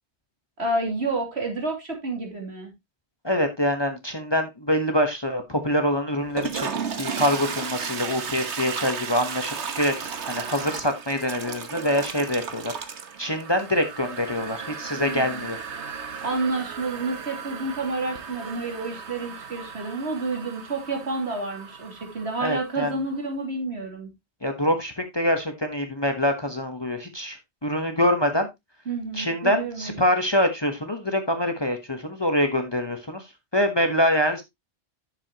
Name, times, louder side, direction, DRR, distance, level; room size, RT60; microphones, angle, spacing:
voice 1, 0.6-2.7 14.9-15.4 16.2-24.1 28.9-30.1, right 3 dB, 70° right, 2 dB, 3.1 m, -29 dB
voice 2, 3.2-6.7 7.0-12.7 13.2-15.6 22.4-22.9 24.4-28.5 29.1-33.3 33.5-34.4, equal, 25° left, 6 dB, 1.1 m, -25 dB
Toilet flush, 6.2-22.9, right 6 dB, 85° right, 1.4 m, -35 dB
10.5 x 7.1 x 2.9 m, 0.20 s
omnidirectional pair, 1.1 m